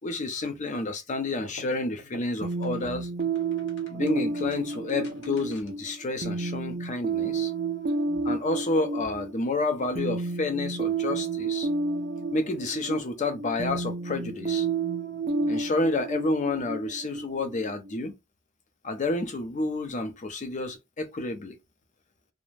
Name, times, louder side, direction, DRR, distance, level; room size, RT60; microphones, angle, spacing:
voice 1, 0.0-3.1 3.9-7.5 8.2-11.7 12.3-14.7 15.5-18.1 18.8-21.6, left 2 dB, 35° left, 0.5 m, -30 dB
sound 1, 1.3-5.9, left 2 dB, 65° left, 0.8 m, -49 dB
sound 2, 2.4-18.0, right 4 dB, 45° right, 0.4 m, -31 dB
2.4 x 2.1 x 3.1 m
head